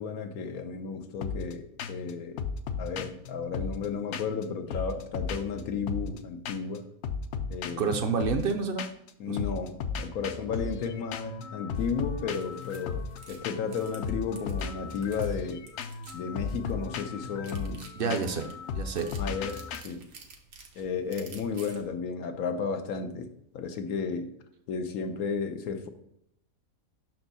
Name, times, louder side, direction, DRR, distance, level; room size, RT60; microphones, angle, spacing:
voice 1, 0.0-2.4 2.8-6.9 7.5-7.9 9.2-13.0 13.3-15.6 16.1-18.2 19.2-20.0 20.8-24.3 24.7-25.9, left 5 dB, 90° left, 6 dB, 1.2 m, -33 dB
sound 1, 1.2-1.5 1.8-2.1 2.4-4.4 4.7-6.2 6.4-6.8 7.0-9.1 9.4-19.8, left 5 dB, 65° left, 0.7 m, -36 dB
voice 2, 7.8-8.8 9.3-9.5 18.0-18.5 18.7-19.1, right 5 dB, 55° right, 6 dB, 0.6 m, -28 dB
sound 2, 11.7-21.9, right 4 dB, 85° right, 1.4 m, -53 dB
6.0 x 4.6 x 4.0 m, 0.76 s
omnidirectional pair, 1.5 m